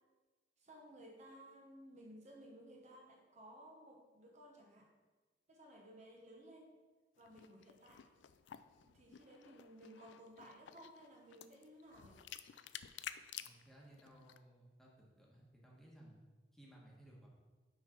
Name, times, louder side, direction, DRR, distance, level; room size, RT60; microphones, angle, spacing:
voice 1, 0.6-4.9 5.5-6.7 7.2-8.1 8.8-12.2, equal, 40° right, -1 dB, 1.1 m, -57 dB
sound 1, 7.2-14.4, left 10 dB, 85° left, 0.4 m, -53 dB
voice 2, 13.4-16.2 16.5-17.3, right 1 dB, ahead, -4 dB, 1.4 m, -60 dB
6.2 x 5.6 x 5.2 m, 1.3 s
head